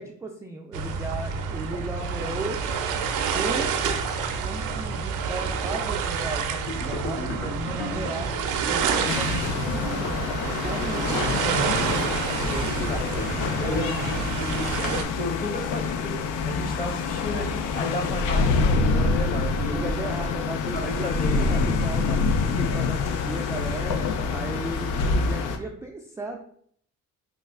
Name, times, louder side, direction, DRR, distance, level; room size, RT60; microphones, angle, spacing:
voice 1, 0.0-2.6 3.3-4.0 4.4-8.4 8.7-11.7 12.5-13.9 19.7-22.2 22.4-24.0 24.3-26.4, right 2 dB, 10° right, 0 dB, 0.3 m, -36 dB
sound 1, 0.7-15.0, right 6 dB, 90° right, 0.5 m, -28 dB
sound 2, 6.7-13.3, left 2 dB, 55° left, 0.8 m, -34 dB
sound 3, 9.1-25.6, left 4 dB, 80° left, 0.5 m, -26 dB
voice 2, 12.4-13.1 13.4-20.1 20.7-21.4, left 2 dB, 30° left, 2 dB, 0.9 m, -33 dB
3.1 x 2.3 x 3.5 m, 0.63 s
cardioid pair, 90°, 30 cm